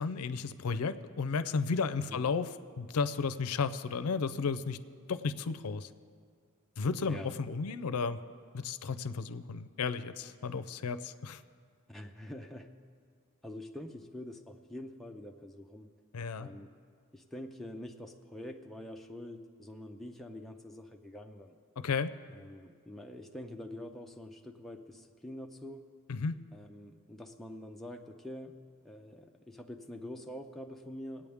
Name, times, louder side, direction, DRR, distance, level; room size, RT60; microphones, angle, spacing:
voice 1, 0.0-2.5 2.8-4.8 5.1-5.9 6.8-8.2 8.5-11.4 16.1-16.5 21.8-22.1 26.1-26.4, left 5 dB, 80° left, 12 dB, 0.5 m, -33 dB
voice 2, 7.0-7.3 11.9-12.7 13.4-15.9 16.3-16.7 17.1-21.6 22.3-25.9 26.5-28.6 28.8-31.3, left 1 dB, ahead, 2 dB, 0.5 m, -45 dB
22.0 x 8.7 x 3.5 m, 2.1 s
head